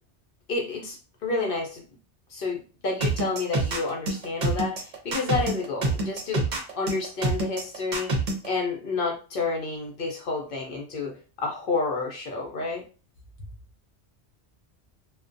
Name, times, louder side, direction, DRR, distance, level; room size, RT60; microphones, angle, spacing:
voice 1, 0.5-1.0 1.2-1.8 2.3-6.5 6.7-8.1 8.4-12.8, left 3 dB, 60° left, 0 dB, 0.7 m, -30 dB
sound 1, 3.0-8.5, right 2 dB, 50° right, 0.7 m, -26 dB
2.3 x 2.1 x 2.5 m, 0.35 s
omnidirectional pair, 1.2 m